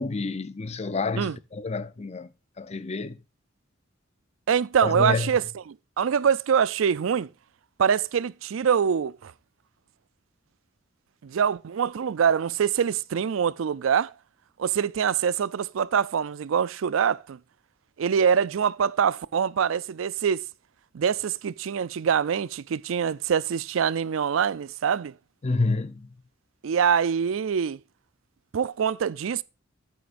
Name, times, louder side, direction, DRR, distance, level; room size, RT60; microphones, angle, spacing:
voice 1, 0.0-2.3 2.6-3.2 4.8-5.3 25.4-26.1, left 3 dB, 35° left, 0.6 m, -28 dB
voice 2, 4.5-7.3 7.8-9.3 11.2-14.1 14.6-17.4 18.0-20.4 20.9-25.1 26.6-27.8 28.5-29.4, right 7 dB, 80° right, 0.4 m, -24 dB
10.5 x 9.1 x 2.5 m
head